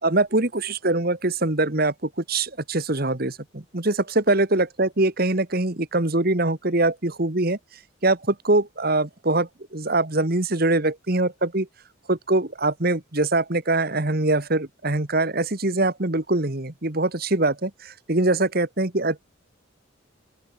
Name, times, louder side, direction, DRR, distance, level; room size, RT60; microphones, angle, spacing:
voice 1, 0.0-7.6 8.0-11.7 12.1-19.2, right 2 dB, 45° right, 1.7 m, -23 dB
open air
head